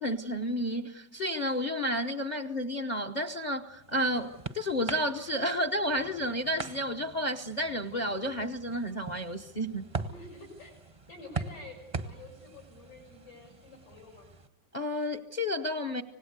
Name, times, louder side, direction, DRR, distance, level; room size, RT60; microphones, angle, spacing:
voice 1, 0.0-9.9 14.7-16.0, equal, 35° left, 8 dB, 0.7 m, -31 dB
sound 1, 3.4-14.5, right 4 dB, 30° right, 0.7 m, -42 dB
voice 2, 10.1-14.3, left 2 dB, 80° left, -2 dB, 6.2 m, -49 dB
26.0 x 18.5 x 8.1 m, 0.91 s
omnidirectional pair, 1.9 m